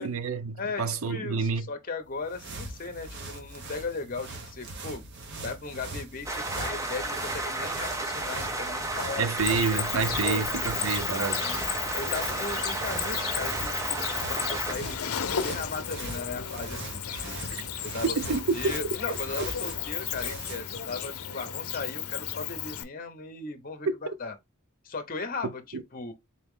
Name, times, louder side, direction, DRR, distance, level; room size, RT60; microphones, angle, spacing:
voice 1, 0.0-1.7 9.2-11.4 17.5-17.6 18.0-18.7 25.7-25.8, right 4 dB, 70° right, 0.6 m, -28 dB
voice 2, 0.6-5.0 5.4-9.2 10.2-10.5 11.1-11.6 12.0-17.4 17.9-24.3 24.8-26.1, left 4 dB, 40° left, 0.8 m, -37 dB
sound 1, 2.0-20.8, right 2 dB, 55° right, 1.0 m, -41 dB
sound 2, 6.3-14.8, right 2 dB, 15° right, 0.7 m, -32 dB
Cricket, 9.4-22.8, left 9 dB, 85° left, 0.6 m, -34 dB
4.1 x 2.9 x 3.7 m
head